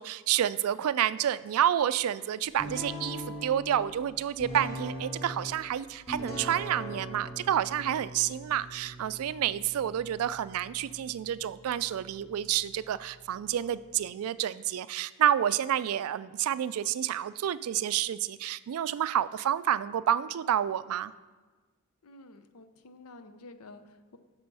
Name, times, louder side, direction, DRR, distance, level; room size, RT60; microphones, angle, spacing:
voice 1, 0.0-21.1, right 10 dB, 80° right, 16 dB, 0.3 m, -29 dB
sound 1, 2.6-14.0, equal, 30° left, 1.7 m, -42 dB
voice 2, 8.2-8.7 9.4-9.7 22.0-24.2, left 2 dB, 90° left, 10 dB, 0.7 m, -51 dB
8.7 x 6.1 x 5.4 m, 1.3 s
head